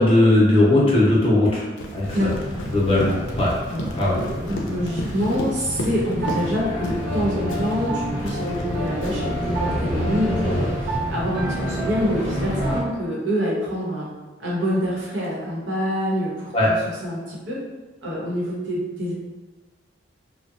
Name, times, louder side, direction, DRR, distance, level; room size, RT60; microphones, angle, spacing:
voice 1, 0.0-1.6 1.9-2.3 2.7-3.5 3.9-4.1 16.5-16.7, left 1 dB, 30° left, -6 dB, 0.6 m, -18 dB
Run, 1.8-6.5 6.8-7.1 7.5-9.4, left 1 dB, 80° left, 0.4 m, -33 dB
sound 1, 2.0-12.8, equal, 40° right, 0.8 m, -29 dB
voice 2, 4.1-14.1 14.4-16.8 17.0-17.6 18.0-19.1, equal, 85° right, -6 dB, 0.9 m, -26 dB
Piano, 6.2-13.0, right 2 dB, 65° right, 0.5 m, -32 dB
2.8 x 2.1 x 2.4 m, 1.3 s
head